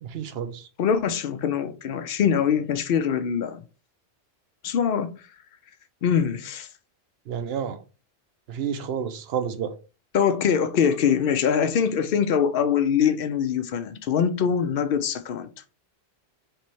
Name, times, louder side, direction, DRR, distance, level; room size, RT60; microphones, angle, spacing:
voice 1, 0.0-0.7 7.3-7.8 8.5-9.7, right 8 dB, 70° right, 0.8 m, -30 dB
voice 2, 0.8-3.6 4.6-5.2 6.0-6.7 10.1-15.5, left 7 dB, 65° left, 0.7 m, -23 dB
3.4 x 3.1 x 4.3 m
omnidirectional pair, 1.1 m